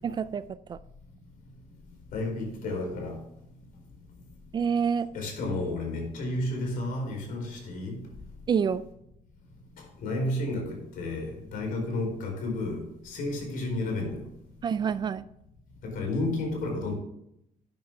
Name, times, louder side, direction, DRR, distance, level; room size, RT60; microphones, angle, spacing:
voice 1, 0.0-0.4 0.7-0.8 4.5-5.1 8.5-8.8 14.6-15.3, right 6 dB, 30° right, 15 dB, 0.4 m, -27 dB
voice 2, 2.1-3.1 5.1-8.0 10.0-12.8 13.0-14.2 15.8-16.9, left 2 dB, 90° left, 2 dB, 4.3 m, -31 dB
12.0 x 8.9 x 3.6 m, 0.78 s
cardioid pair, 165°, 14 cm